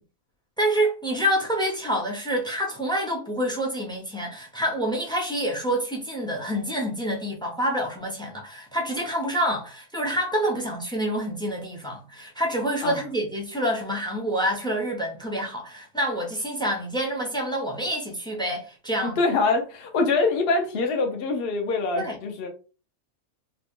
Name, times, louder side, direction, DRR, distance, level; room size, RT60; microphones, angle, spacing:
voice 1, 0.6-19.2 21.9-22.2, equal, 5° left, 0.5 m, -27 dB
voice 2, 19.0-22.5, left 3 dB, 50° left, 0.9 m, -24 dB
2.9 x 2.4 x 3.5 m
omnidirectional pair, 1.4 m